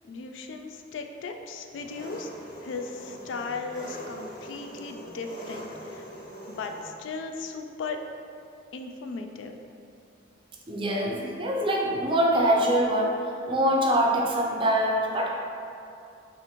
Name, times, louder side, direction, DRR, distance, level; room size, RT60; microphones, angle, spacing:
voice 1, 0.1-2.3 2.6-6.1 6.5-8.0 8.7-9.6, left 4 dB, 85° left, 5 dB, 0.3 m, -37 dB
Engine, 1.6-6.9, equal, 50° left, 1.0 m, -42 dB
voice 2, 10.7-13.2 13.5-15.3, right 1 dB, 30° right, -1 dB, 0.4 m, -24 dB
5.6 x 2.6 x 2.9 m, 2.6 s
head